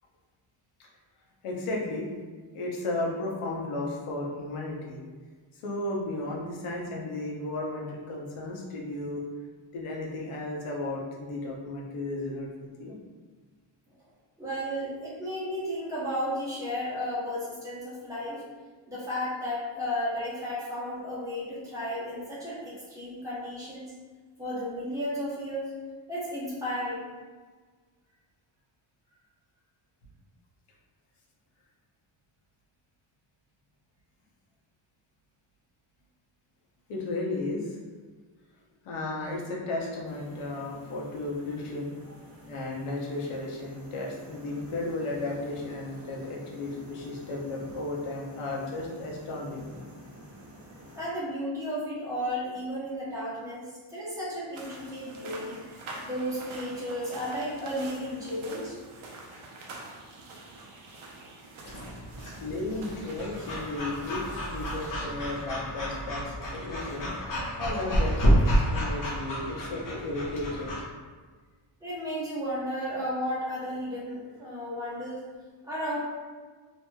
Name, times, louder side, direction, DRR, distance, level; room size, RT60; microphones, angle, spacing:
voice 1, 1.4-2.1 2.5-5.0 5.6-9.2 9.7-12.5 12.8-13.0 36.9-37.8 38.8-41.9 42.5-49.6 62.4-67.1 67.6-68.2 68.6-70.7, left 2 dB, 90° left, -2 dB, 0.8 m, -34 dB
voice 2, 14.4-18.4 18.9-23.9 24.4-25.7 26.1-27.1 50.9-55.6 56.0-58.7 71.8-75.2 75.6-76.0, equal, 5° right, -9 dB, 0.9 m, -33 dB
sound 1, 40.0-51.1, equal, 30° right, 0.5 m, -49 dB
sound 2, 54.5-65.4, right 2 dB, 70° right, 0.7 m, -46 dB
Breathing / Dog, 61.7-70.8, equal, 40° left, 0.7 m, -29 dB
2.9 x 2.7 x 2.2 m, 1.5 s
wide cardioid pair, 155°, 50 cm